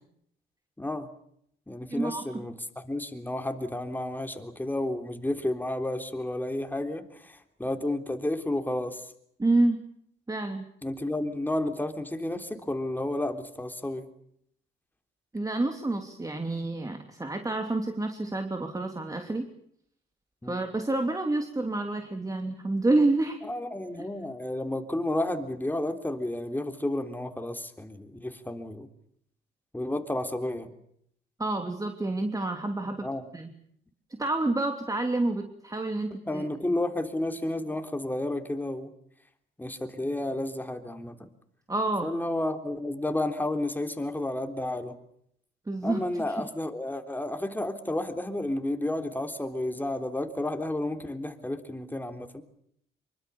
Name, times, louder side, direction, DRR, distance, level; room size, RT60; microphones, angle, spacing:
voice 1, 0.8-1.1 1.7-2.5 2.8-9.0 10.8-14.1 20.4-20.6 23.5-28.9 29.7-30.7 33.0-33.2 36.1-38.9 39.6-41.3 42.0-44.9 45.8-52.4, left 1 dB, 10° left, 6 dB, 3.5 m, -31 dB
voice 2, 1.9-2.2 9.4-9.8 10.3-10.6 15.3-19.5 20.5-23.4 24.0-24.1 31.4-33.1 33.3-33.5 34.2-36.4 41.7-42.1 45.7-46.5, right 2 dB, 15° right, 5 dB, 3.0 m, -28 dB
25.5 x 24.0 x 7.2 m, 0.70 s
cardioid pair, 90°, 20 cm